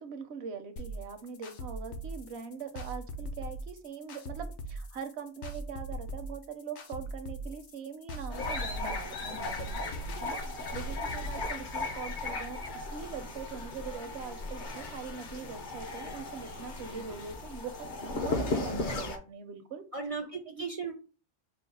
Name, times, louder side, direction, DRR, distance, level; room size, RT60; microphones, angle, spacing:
voice 1, 0.0-9.8 10.2-10.4 10.7-20.6, right 6 dB, 70° right, 8 dB, 0.9 m, -42 dB
sound 1, 0.8-11.4, right 1 dB, 75° left, 1.0 m, -40 dB
sound 2, 8.3-19.2, left 2 dB, 50° left, 0.8 m, -36 dB
voice 2, 19.9-20.9, right 4 dB, 45° right, 5 dB, 0.4 m, -37 dB
4.5 x 2.0 x 4.0 m, 0.34 s
omnidirectional pair, 1.2 m